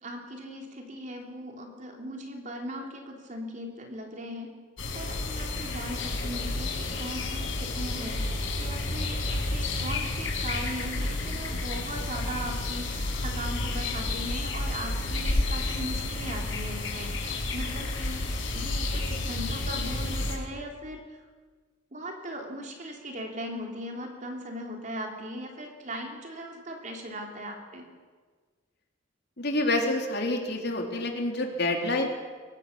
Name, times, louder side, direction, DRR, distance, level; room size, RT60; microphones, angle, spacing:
voice 1, 0.0-4.5 4.9-8.3 8.6-21.0 21.9-27.8, equal, 40° right, 2 dB, 3.4 m, -39 dB
sound 1, 4.8-20.4, left 2 dB, 85° left, 4.6 m, -31 dB
voice 2, 29.4-32.1, left 2 dB, 60° left, 2 dB, 3.4 m, -27 dB
23.5 x 17.5 x 6.8 m, 1.5 s
head